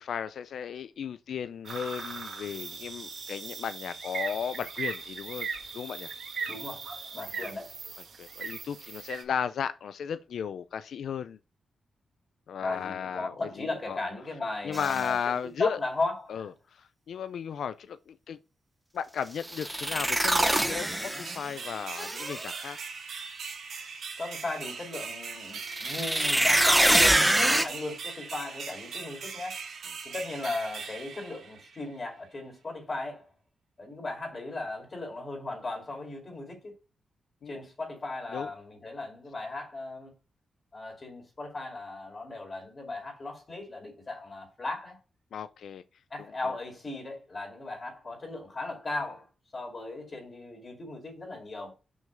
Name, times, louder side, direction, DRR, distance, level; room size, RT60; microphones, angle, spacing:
voice 1, 0.0-5.5 5.7-6.1 7.3-7.5 8.2-11.4 12.5-14.0 14.6-15.8 16.3-18.4 18.9-22.8 37.4-37.6 38.3-38.5 45.3-45.8, left 7 dB, 70° left, 0.4 m, -35 dB
sound 1, 1.7-9.2, right 5 dB, 55° right, 1.7 m, -38 dB
voice 2, 6.5-7.8 12.6-16.5 24.2-29.6 30.0-33.3 33.8-36.7 37.5-40.1 40.7-45.0 46.1-49.3 49.5-51.7, left 2 dB, 30° left, 2.2 m, -37 dB
sound 2, 14.7-15.0 19.4-21.5 22.0-22.6 25.6-27.6, right 1 dB, 5° right, 0.8 m, -24 dB
sound 3, 21.2-32.0, right 5 dB, 70° right, 1.9 m, -40 dB
6.3 x 5.5 x 5.0 m
wide cardioid pair, 160°, 0 cm